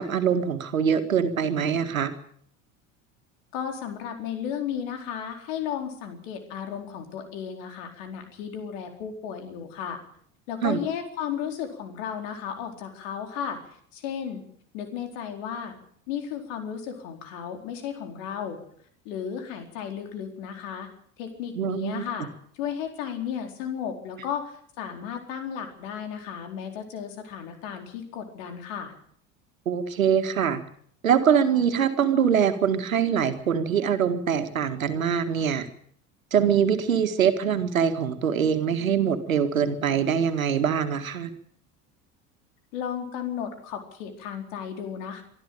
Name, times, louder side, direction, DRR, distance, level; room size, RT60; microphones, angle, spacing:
voice 1, 0.0-2.1 10.6-10.8 21.6-22.0 29.7-30.6 31.0-35.7 36.3-41.3, right 7 dB, 90° right, 8 dB, 1.9 m, -23 dB
voice 2, 3.5-10.0 10.5-13.6 13.9-14.4 14.7-15.7 16.1-18.6 19.0-20.9 21.2-22.3 22.5-28.9 42.7-45.2, left 8 dB, 70° left, 5 dB, 4.4 m, -34 dB
24.5 x 12.5 x 9.0 m, 0.63 s
hypercardioid pair, 70°, 40 cm